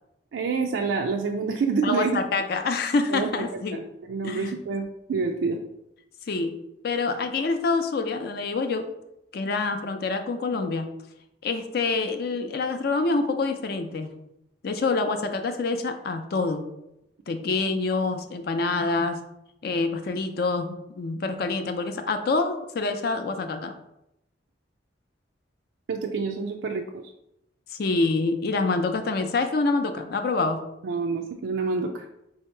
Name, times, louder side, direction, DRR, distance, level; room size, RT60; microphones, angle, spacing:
voice 1, 0.3-2.2 3.1-3.5 3.7-5.6 25.9-27.0 30.8-32.1, right 4 dB, 85° right, 2 dB, 0.4 m, -27 dB
voice 2, 1.8-3.8 4.2-4.6 6.3-6.5 6.8-8.9 9.3-10.9 11.4-14.1 14.6-16.7 17.3-19.2 19.6-23.7 27.7-30.6, left 3 dB, 55° left, 7 dB, 0.4 m, -26 dB
3.7 x 2.8 x 4.4 m, 0.84 s
head